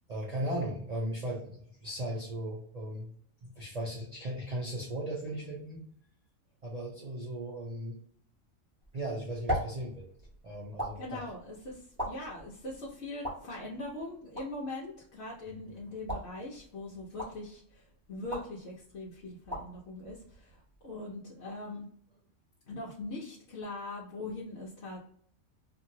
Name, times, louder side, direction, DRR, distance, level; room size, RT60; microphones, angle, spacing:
voice 1, 0.1-3.1 3.4-5.8 6.6-8.0 8.9-10.0 10.4-11.2 15.5-15.7, right 1 dB, 45° right, -4 dB, 0.5 m, -37 dB
sound 1, 8.8-21.0, equal, 15° right, 1.3 m, -42 dB
voice 2, 11.0-21.9 22.7-25.0, left 2 dB, 60° left, -5 dB, 0.9 m, -41 dB
2.9 x 2.6 x 2.6 m, 0.63 s
omnidirectional pair, 1.4 m